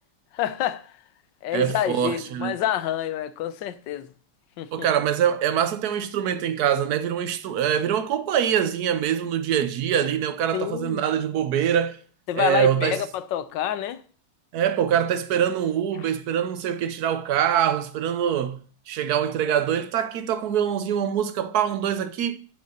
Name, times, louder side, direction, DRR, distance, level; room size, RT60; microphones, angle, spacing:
voice 1, 0.3-0.9 1.4-4.1 4.6-4.7 10.5-11.0 12.3-14.0, left 11 dB, 70° left, 1.3 m, -27 dB
voice 2, 1.5-2.6 4.7-12.0 12.3-13.0 14.5-18.6 18.9-22.4, right 9 dB, 65° right, 1.1 m, -24 dB
7.8 x 5.4 x 6.5 m
omnidirectional pair, 2.2 m